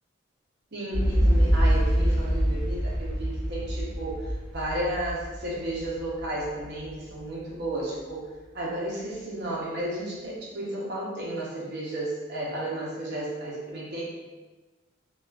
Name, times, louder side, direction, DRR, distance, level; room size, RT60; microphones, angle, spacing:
voice 1, 0.7-8.3 8.5-14.1, right 1 dB, 55° right, -6 dB, 0.7 m, -33 dB
sound 1, 0.9-6.9 7.3-7.4, equal, 5° right, 0.8 m, -25 dB
2.3 x 2.3 x 2.2 m, 1.2 s
head